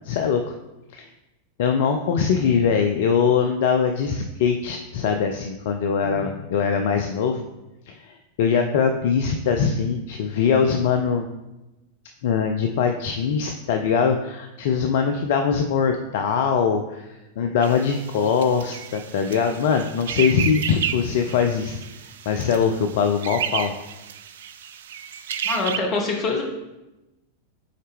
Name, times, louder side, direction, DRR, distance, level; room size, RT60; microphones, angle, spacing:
voice 1, 0.0-0.5 0.9-1.1 1.6-7.4 7.9-11.3 12.2-21.8 22.3-23.7, left 6 dB, 55° left, 6 dB, 0.4 m, -22 dB
voice 2, 6.0-6.3 25.4-26.4, left 3 dB, 35° left, 1 dB, 1.3 m, -25 dB
sound 1, 17.6-25.8, right 9 dB, 60° right, 0.3 m, -32 dB
6.3 x 4.3 x 3.5 m, 1.0 s
figure-of-eight pair, 90°, 0 cm